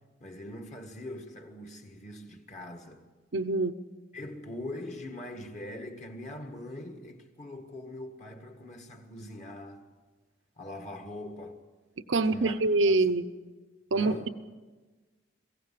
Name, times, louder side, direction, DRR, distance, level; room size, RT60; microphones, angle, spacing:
voice 1, 0.2-3.0 4.1-9.8 10.6-11.6 12.2-12.6 12.9-13.1 13.9-14.3, left 1 dB, 35° left, 1.7 m, -42 dB
voice 2, 3.3-3.7 12.1-13.3 13.9-14.1, right 3 dB, 70° right, 0.8 m, -25 dB
22.5 x 16.0 x 7.6 m
head